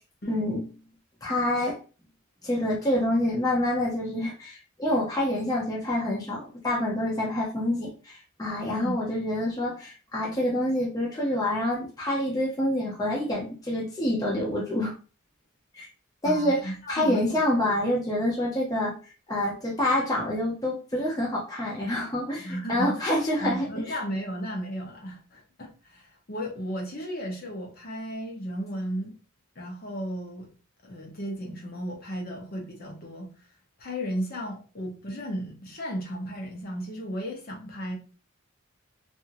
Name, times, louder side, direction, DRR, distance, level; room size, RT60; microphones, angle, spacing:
voice 1, 0.3-0.6 1.2-1.8 2.4-14.9 15.7-15.9 16.2-18.9 19.3-24.0, left 1 dB, 20° left, 0.6 m, -27 dB
voice 2, 8.7-9.0 16.2-17.4 17.8-17.9 22.4-23.1 23.4-29.1 29.6-30.5 30.8-33.3 33.8-38.0, equal, 45° left, 0.8 m, -34 dB
2.8 x 2.6 x 2.5 m
head